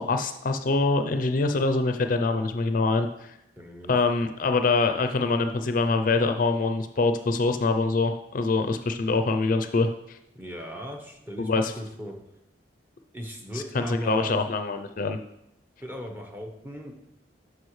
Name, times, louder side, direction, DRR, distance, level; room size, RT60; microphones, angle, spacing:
voice 1, 0.0-3.3 3.9-10.2 11.4-11.7 13.5-15.2, left 3 dB, 50° left, 7 dB, 0.5 m, -24 dB
voice 2, 3.6-3.9 10.3-12.2 13.1-14.4 15.8-16.9, equal, 10° right, 2 dB, 1.0 m, -37 dB
12.5 x 4.9 x 3.2 m, 0.84 s
head